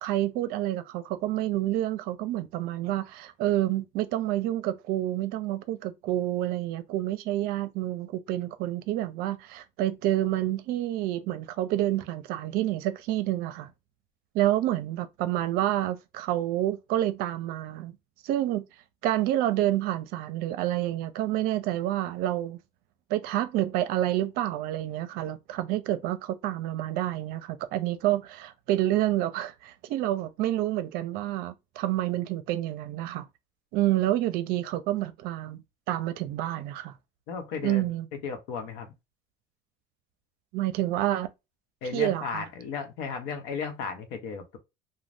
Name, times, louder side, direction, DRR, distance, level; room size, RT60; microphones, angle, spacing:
voice 1, 0.0-13.7 14.3-17.9 18.2-18.6 19.0-22.6 23.1-33.3 33.7-36.9 37.6-38.1 40.5-41.3 41.9-42.4, right 14 dB, 65° right, 0.5 m, -28 dB
voice 2, 37.3-38.9 41.8-44.6, left 5 dB, 75° left, 0.9 m, -35 dB
2.6 x 2.1 x 3.3 m
cardioid pair, 135°, 17 cm